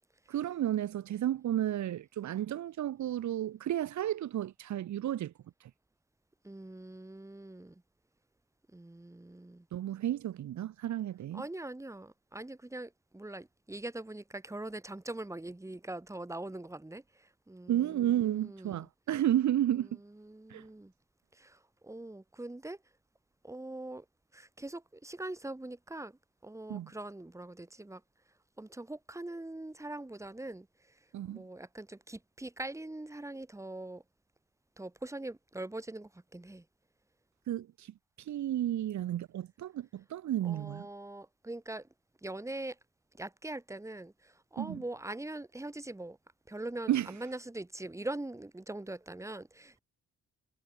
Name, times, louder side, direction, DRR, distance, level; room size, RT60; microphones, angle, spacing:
voice 1, 0.3-5.3 9.7-11.4 17.7-20.0 20.5-20.6 26.7-26.9 31.1-31.4 37.5-40.9 44.6-44.8 46.9-47.1, right 12 dB, 70° right, 2.1 m, -32 dB
voice 2, 6.4-7.8 8.7-9.7 11.3-18.9 20.2-20.9 21.3-22.8 23.4-24.0 24.3-28.0 28.6-30.7 31.3-34.0 34.8-36.6 40.4-41.9 42.2-42.8 43.2-46.2 46.5-49.8, right 2 dB, 10° right, 3.0 m, -42 dB
cardioid pair, 90°, 30 cm